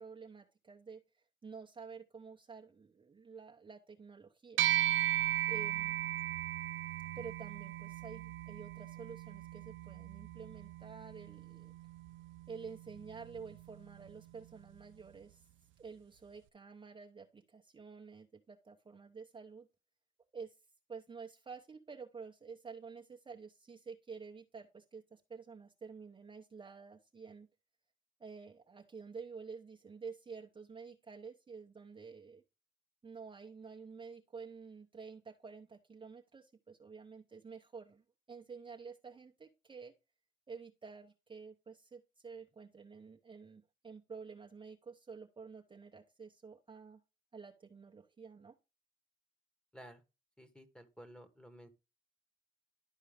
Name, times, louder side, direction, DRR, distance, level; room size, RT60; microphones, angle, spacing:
voice 1, 0.0-4.6 5.5-6.2 7.1-11.7 12.5-15.4 15.8-19.7 20.3-20.5 20.9-27.5 28.2-32.4 33.0-39.9 40.5-47.0 47.3-48.6, right 5 dB, 25° right, 1 dB, 0.8 m, -50 dB
sound 1, 4.6-14.2, right 13 dB, 75° right, 0.4 m, -37 dB
voice 2, 50.4-51.7, equal, 5° left, 10 dB, 1.3 m, -54 dB
11.5 x 4.5 x 3.5 m, 0.28 s
cardioid pair, 90°, 20 cm